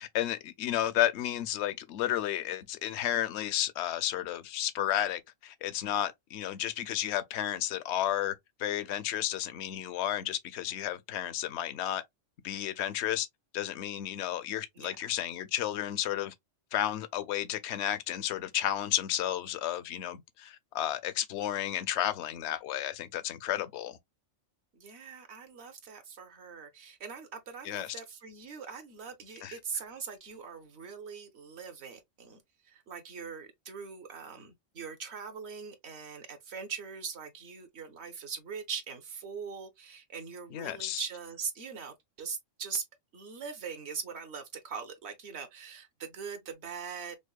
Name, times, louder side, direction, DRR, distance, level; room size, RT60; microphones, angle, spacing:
voice 1, 0.0-12.0 12.4-13.3 13.5-16.3 16.7-24.0 27.6-27.9 29.4-29.6 40.5-41.0, left 12 dB, 70° left, 0.8 m, -32 dB
voice 2, 14.8-15.1 24.7-32.4 32.6-42.8 43.1-47.2, right 6 dB, 60° right, 1.1 m, -41 dB
5.1 x 2.1 x 2.3 m
omnidirectional pair, 1.3 m